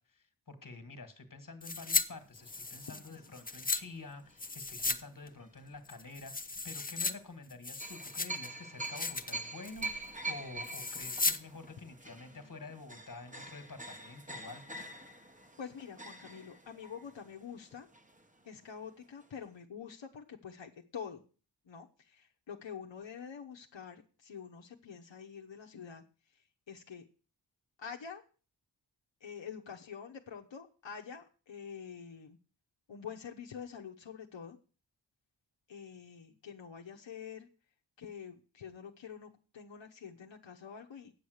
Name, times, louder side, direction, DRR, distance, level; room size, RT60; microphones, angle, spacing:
voice 1, 0.0-14.6, left 3 dB, 45° left, 10 dB, 1.7 m, -49 dB
sound 1, 1.6-2.0 2.3-3.8 4.4-5.0 5.3-5.4 5.9-7.1 7.5-8.5 8.8-9.3 9.6-10.0 10.6-11.4 11.7-11.8, left 3 dB, 20° left, 0.7 m, -35 dB
sound 2, 2.4-4.8 5.4-5.6 7.8-18.6 18.8-18.9 19.2-19.4, right 2 dB, 20° right, 1.0 m, -45 dB
voice 2, 12.2-12.5 15.6-17.9 18.4-21.2 21.6-27.1 27.8-28.2 29.2-32.4 32.9-34.6 35.7-37.5 38.0-41.1, left 7 dB, 85° left, 2 dB, 1.0 m, -47 dB
8.8 x 7.2 x 6.4 m, 0.37 s
wide cardioid pair, 85°, 43 cm